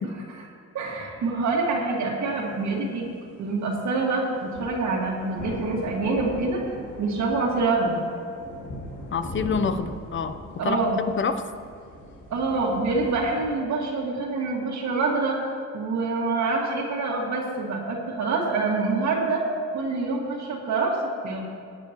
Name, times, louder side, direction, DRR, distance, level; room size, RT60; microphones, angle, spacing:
voice 1, 0.7-3.1 3.4-6.6 7.0-8.0 10.6-11.0 12.3-15.4 15.7-19.4 19.7-21.4, right 3 dB, 65° right, -2 dB, 2.0 m, -26 dB
sound 1, 4.5-13.4, left 1 dB, 70° left, 2.4 m, -40 dB
voice 2, 9.1-10.4 10.6-11.4, left 5 dB, 40° left, 10 dB, 0.8 m, -27 dB
17.5 x 9.0 x 3.0 m, 2.3 s
cardioid pair, 90°, 30 cm